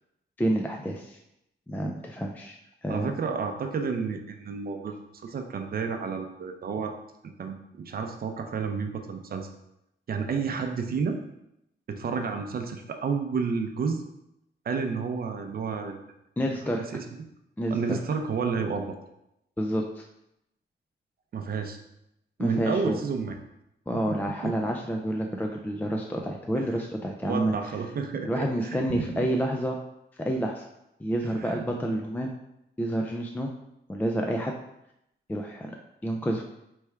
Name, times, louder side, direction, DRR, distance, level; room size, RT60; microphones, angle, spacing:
voice 1, 0.4-1.2 1.7-3.1 16.4-16.8 17.6-18.0 19.6-20.0 22.4-23.0 23.9-27.5 28.2-29.8 30.2-30.7 31.0-32.3 32.8-33.5 33.9-34.5 35.3-35.7 36.0-36.4, equal, 10° left, 1 dB, 0.3 m, -29 dB
voice 2, 2.9-6.9 7.4-9.5 10.1-11.2 11.9-14.0 14.7-16.0 16.9-17.2 17.7-19.0 21.3-21.8 22.4-23.3 24.1-24.5 26.5-26.7 27.2-28.5 28.9-29.0 31.4-31.6, right 5 dB, 50° right, 5 dB, 0.6 m, -31 dB
3.4 x 3.2 x 4.5 m, 0.83 s
wide cardioid pair, 120°, 19 cm